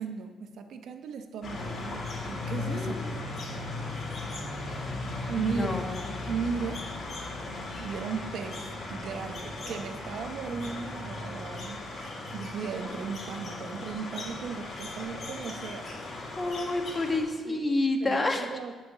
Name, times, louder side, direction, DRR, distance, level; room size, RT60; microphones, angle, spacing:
voice 1, 0.0-3.0 5.3-5.8 6.3-6.9 7.8-8.6 8.9-15.9 17.5-18.7, right 6 dB, 70° right, 7 dB, 0.9 m, -36 dB
sound 1, 1.4-17.2, left 2 dB, 45° left, 3.3 m, -37 dB
voice 2, 2.7-3.1 5.4-6.0 16.4-18.5, left 2 dB, 25° left, 4 dB, 1.5 m, -29 dB
10.5 x 6.1 x 8.1 m, 1.4 s
cardioid pair, 90°, 0 cm